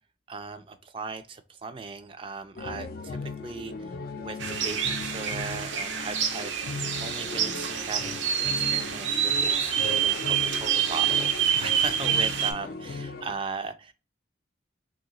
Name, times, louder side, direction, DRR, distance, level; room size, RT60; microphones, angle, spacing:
voice 1, 0.3-3.2 3.4-13.9, right 4 dB, 30° right, 9 dB, 0.3 m, -38 dB
sound 1, 2.6-13.3, left 4 dB, 50° left, 0.4 m, -38 dB
sound 2, 4.4-12.5, right 8 dB, 85° right, 0.6 m, -27 dB
3.1 x 2.8 x 3.9 m, 0.34 s
head